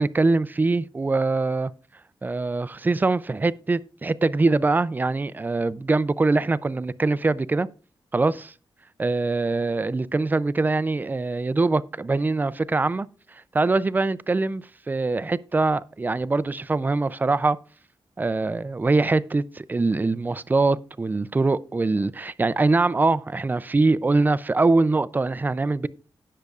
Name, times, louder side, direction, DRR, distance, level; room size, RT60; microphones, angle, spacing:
voice 1, 0.0-1.7 2.2-7.7 8.1-8.5 9.0-13.1 13.5-17.6 18.2-25.9, right 3 dB, 20° right, 0.4 m, -23 dB
18.5 x 6.6 x 2.4 m
wide cardioid pair, 135°, 9 cm